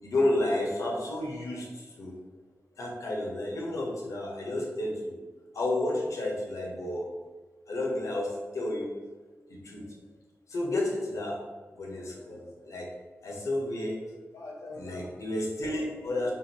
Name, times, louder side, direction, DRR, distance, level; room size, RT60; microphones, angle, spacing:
voice 1, 0.0-2.1 2.8-5.1 5.5-7.1 7.7-8.9 9.5-9.8 10.5-11.5 11.8-12.9 13.2-14.0 14.3-16.3, left 1 dB, 80° left, -2 dB, 1.1 m, -31 dB
3.8 x 2.8 x 4.2 m, 1.4 s
cardioid pair, 60°, 5 cm